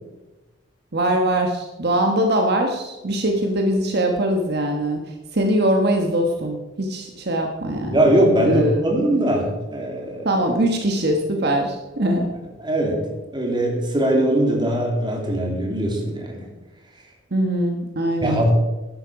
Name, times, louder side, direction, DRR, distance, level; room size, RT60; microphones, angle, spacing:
voice 1, 0.9-5.0 5.3-8.8 10.2-12.3 17.3-18.4, right 1 dB, 60° right, 3 dB, 1.3 m, -22 dB
voice 2, 7.9-10.3 12.6-13.1 13.3-16.5 18.2-18.5, right 1 dB, 25° right, 1 dB, 2.6 m, -21 dB
12.5 x 10.5 x 4.8 m, 1.1 s
head